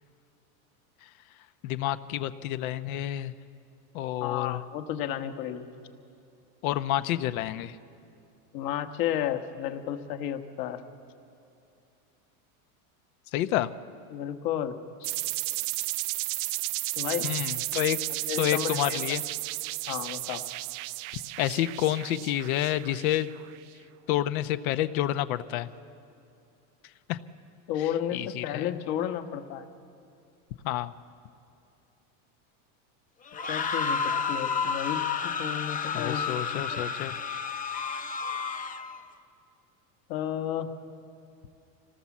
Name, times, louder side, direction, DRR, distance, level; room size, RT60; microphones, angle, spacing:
voice 1, 1.6-3.3 3.9-4.6 6.6-7.8 13.3-13.7 17.2-18.0 18.4-19.2 21.1-23.3 24.1-25.7 27.1-27.2 27.8-28.7 30.6-30.9 35.9-37.2, left 13 dB, 75° left, 12 dB, 0.9 m, -29 dB
voice 2, 4.2-5.7 8.5-10.8 14.1-14.8 17.0-17.3 18.3-19.0 19.9-20.4 27.7-29.6 33.5-36.9 40.1-40.7, left 10 dB, 55° left, 6 dB, 1.5 m, -32 dB
sound 1, 15.0-23.6, right 20 dB, 50° right, 0.5 m, -33 dB
sound 2, 33.3-39.0, left 5 dB, 20° left, 0.7 m, -31 dB
25.5 x 18.0 x 7.3 m, 2.5 s
supercardioid pair, 135°, 43 cm